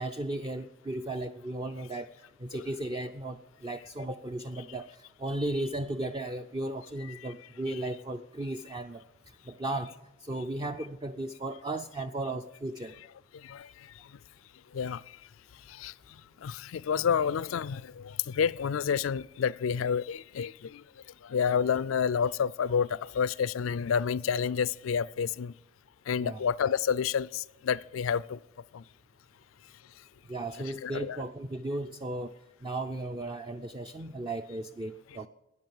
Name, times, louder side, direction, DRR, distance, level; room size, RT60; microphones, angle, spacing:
voice 1, 0.0-2.1 2.4-9.0 9.5-9.9 10.2-13.0 26.2-26.4 30.3-32.3 32.6-35.3, right 1 dB, 25° right, 0.4 m, -35 dB
voice 2, 13.3-13.9 14.7-15.0 15.7-15.9 16.4-20.8 21.2-25.5 26.1-28.4 28.7-28.8 30.8-31.2, left 7 dB, 90° left, 0.4 m, -29 dB
13.5 x 9.7 x 7.1 m
head